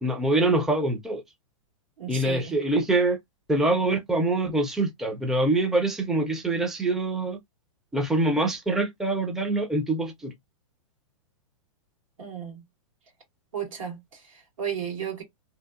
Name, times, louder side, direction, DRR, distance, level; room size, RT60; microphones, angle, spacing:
voice 1, 0.0-1.2 2.1-3.2 3.5-7.4 7.9-10.3, right 2 dB, ahead, 0.4 m, -24 dB
voice 2, 2.0-2.6 12.2-12.6 13.5-15.2, right 8 dB, 80° right, 1.6 m, -34 dB
2.7 x 2.4 x 2.3 m
hypercardioid pair, 125°, 17 cm